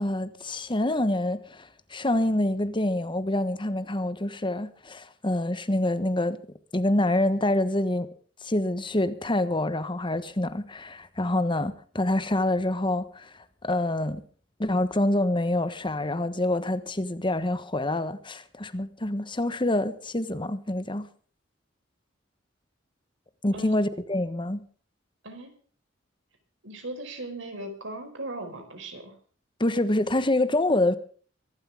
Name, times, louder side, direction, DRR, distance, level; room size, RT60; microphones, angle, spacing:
voice 1, 0.0-6.4 6.7-8.1 8.4-14.2 14.6-21.1 23.4-24.6 29.6-31.0, left 1 dB, 25° left, 1.3 m, -26 dB
voice 2, 26.6-29.1, right 2 dB, 85° right, 4.8 m, -38 dB
24.5 x 12.5 x 3.6 m
head